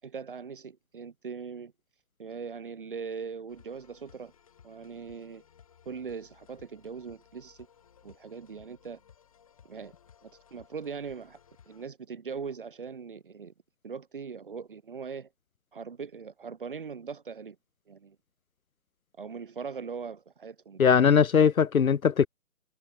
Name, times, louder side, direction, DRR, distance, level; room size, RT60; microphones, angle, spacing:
voice 1, 0.0-1.7 2.2-4.3 4.6-5.4 5.9-7.7 8.0-9.0 9.6-9.9 10.2-11.4 11.7-13.5 13.8-15.3 15.7-17.6 17.9-18.2 19.2-20.8, right 5 dB, 35° right, 7.7 m, -40 dB
sound 1, 3.5-11.9, left 8 dB, 25° left, 6.8 m, -59 dB
voice 2, 20.8-22.3, left 7 dB, 70° left, 0.9 m, -20 dB
hypercardioid pair, 180°, 44 cm